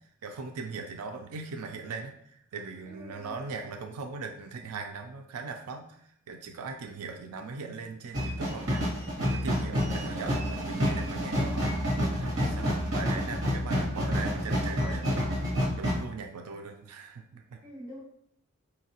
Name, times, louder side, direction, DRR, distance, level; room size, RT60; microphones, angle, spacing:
voice 1, 0.2-11.7 12.2-17.6, right 4 dB, 85° right, 4 dB, 0.4 m, -40 dB
voice 2, 2.9-3.3 11.3-11.6 12.5-12.7 17.6-18.0, equal, 15° right, -8 dB, 1.5 m, -44 dB
sound 1, 8.1-16.0, equal, 55° right, 1.4 m, -29 dB
4.5 x 2.8 x 2.8 m, 0.66 s
head